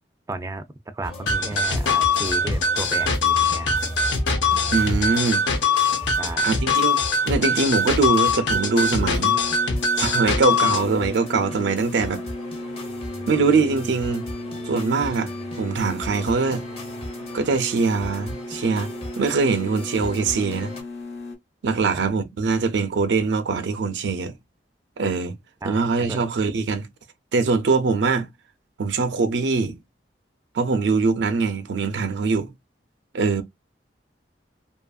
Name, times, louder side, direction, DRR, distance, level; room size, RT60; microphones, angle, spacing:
voice 1, 0.3-0.6 0.9-3.8 6.2-6.5 21.8-22.1 25.6-26.3, right 2 dB, 15° right, 0.3 m, -33 dB
sound 1, 1.0-20.8, left 1 dB, 35° left, 0.7 m, -37 dB
sound 2, 1.3-10.8, left 3 dB, 85° left, 0.7 m, -22 dB
voice 2, 4.7-5.4 6.4-7.0 7.3-9.4 10.0-12.2 13.3-14.3 14.7-15.3 15.6-16.6 17.3-20.7 21.6-24.3 25.0-25.4 25.6-26.9 27.3-28.3 28.8-29.8 30.5-32.5 33.1-33.4, right 4 dB, 80° right, 0.5 m, -22 dB
sound 3, 8.5-21.3, left 1 dB, 65° left, 1.0 m, -35 dB
2.7 x 2.5 x 2.3 m
head